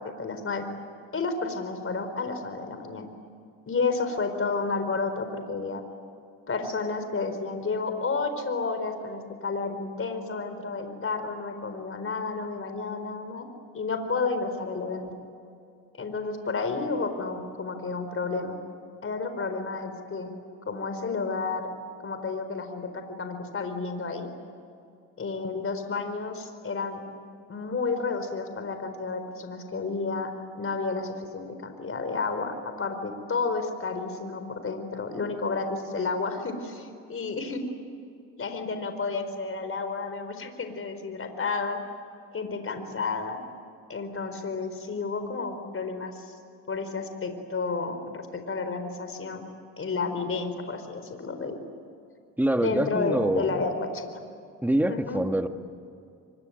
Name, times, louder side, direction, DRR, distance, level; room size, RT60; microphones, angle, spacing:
voice 1, 0.2-0.7 1.1-3.1 3.7-5.8 6.5-13.5 13.7-15.1 16.0-18.6 19.0-20.3 20.7-21.7 22.0-24.3 25.2-27.0 27.5-30.3 30.6-37.7 38.4-41.8 42.3-43.4 43.9-46.3 46.7-49.4 49.8-51.6 52.6-54.2 54.9-55.2, left 4 dB, 35° left, 7 dB, 4.4 m, -31 dB
voice 2, 52.4-53.6 54.6-55.5, right 1 dB, 5° right, 7 dB, 1.8 m, -25 dB
25.5 x 23.5 x 9.2 m, 2.5 s
supercardioid pair, 75°, 35 cm